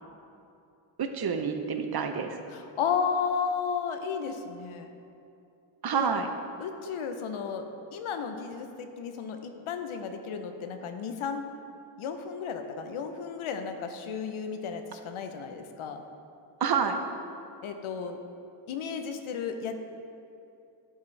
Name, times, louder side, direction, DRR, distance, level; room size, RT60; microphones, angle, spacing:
voice 1, 1.0-2.3 5.8-6.3 16.6-17.0, right 6 dB, 50° right, 6 dB, 0.7 m, -28 dB
voice 2, 2.5-4.9 5.9-6.1 6.6-7.7 7.9-11.4 12.0-16.0 17.6-18.2 18.7-19.8, left 6 dB, 85° left, 6 dB, 0.7 m, -33 dB
10.5 x 5.9 x 3.2 m, 2.7 s
cardioid pair, 75°, 49 cm